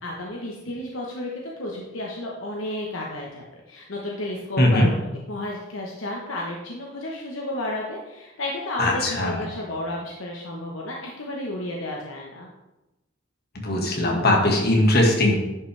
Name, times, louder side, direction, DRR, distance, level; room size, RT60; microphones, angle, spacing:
voice 1, 0.0-5.0 5.3-12.5, left 1 dB, 70° left, -2 dB, 1.2 m, -32 dB
voice 2, 4.6-4.9 8.8-9.5 13.6-15.3, left 1 dB, 50° left, 0 dB, 1.9 m, -20 dB
11.0 x 5.9 x 3.4 m, 0.98 s
head